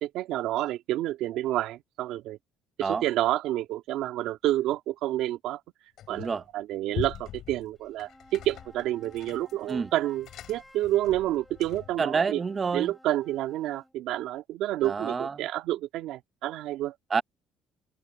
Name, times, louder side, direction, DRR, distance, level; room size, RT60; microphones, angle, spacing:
voice 1, 0.0-2.4 2.8-5.6 6.1-12.4 12.7-16.9, right 14 dB, 75° right, 1.9 m, -29 dB
sound 1, 6.0-6.5 6.9-12.0, left 12 dB, 65° left, 7.5 m, -42 dB
voice 2, 6.1-6.4 9.7-9.9 12.0-12.9 14.8-15.3 17.1-17.2, right 5 dB, 30° right, 0.8 m, -28 dB
sound 2, 7.8-14.0, left 1 dB, 5° left, 6.7 m, -55 dB
open air
cardioid pair, 105°, 0 cm